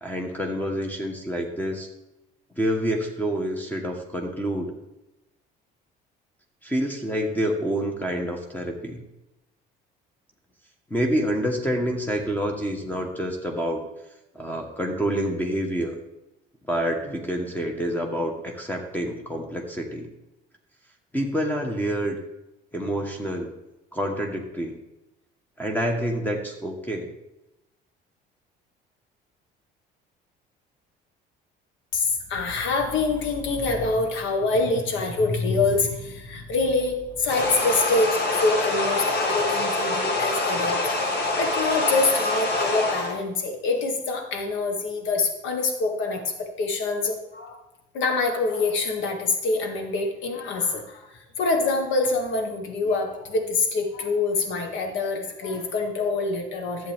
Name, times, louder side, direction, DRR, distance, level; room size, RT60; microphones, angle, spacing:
voice 1, 0.0-1.9 2.5-4.7 6.6-9.0 10.9-13.8 14.3-15.9 16.7-20.1 21.1-22.2 22.7-23.5 23.9-24.7 25.6-27.1, equal, 10° left, 2 dB, 1.3 m, -27 dB
voice 2, 31.9-40.8 41.4-47.6 47.9-56.9, left 3 dB, 70° left, 4 dB, 1.8 m, -25 dB
sound 1, 37.3-43.1, left 2 dB, 55° left, 2.1 m, -25 dB
11.5 x 7.6 x 3.6 m, 0.96 s
supercardioid pair, 90°, 20 cm